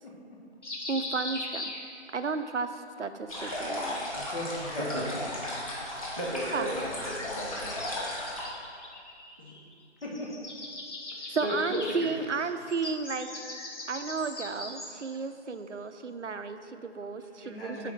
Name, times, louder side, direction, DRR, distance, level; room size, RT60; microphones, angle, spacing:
voice 1, 0.0-0.4 4.1-4.9 10.0-10.3 17.4-17.9, left 1 dB, 55° left, -3 dB, 1.8 m, -38 dB
sound 1, 0.6-2.4 3.8-4.8 6.8-9.7 10.0-15.2, left 2 dB, 75° left, 1.3 m, -41 dB
voice 2, 0.9-1.7 2.1-4.1 6.5-6.9 11.3-13.3 13.9-17.9, right 4 dB, 85° right, 9 dB, 0.6 m, -33 dB
sound 2, 3.3-8.5, left 1 dB, 30° left, 1.4 m, -36 dB
voice 3, 5.8-8.1 9.4-9.5 11.2-11.8, equal, 20° right, -4 dB, 0.5 m, -36 dB
5.8 x 5.0 x 6.1 m, 2.3 s
figure-of-eight pair, 155°, 35 cm